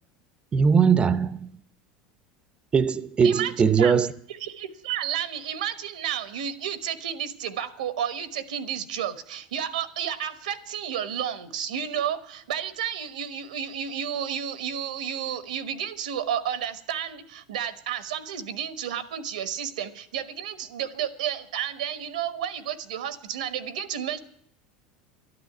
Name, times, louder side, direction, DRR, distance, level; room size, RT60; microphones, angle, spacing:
voice 1, 0.5-1.5 2.7-4.1, right 6 dB, 25° right, 0.7 m, -20 dB
voice 2, 3.2-4.0 4.3-24.2, right 9 dB, 90° right, 1.2 m, -31 dB
12.5 x 9.8 x 9.4 m
supercardioid pair, 100°, 4 cm